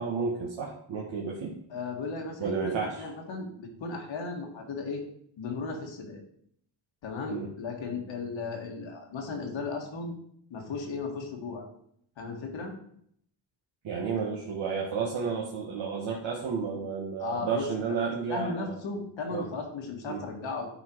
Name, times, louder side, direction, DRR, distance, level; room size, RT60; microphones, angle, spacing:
voice 1, 0.0-1.6 2.4-3.0 7.3-7.5 13.8-18.8 19.3-19.5 20.1-20.2, right 5 dB, 80° right, -3 dB, 1.5 m, -32 dB
voice 2, 1.7-5.0 5.4-6.2 7.0-10.1 10.5-11.7 12.2-12.8 17.2-17.7 18.3-20.7, left 4 dB, 80° left, 2 dB, 1.8 m, -36 dB
10.5 x 4.3 x 4.5 m, 0.68 s
cardioid pair, 95°, 45 cm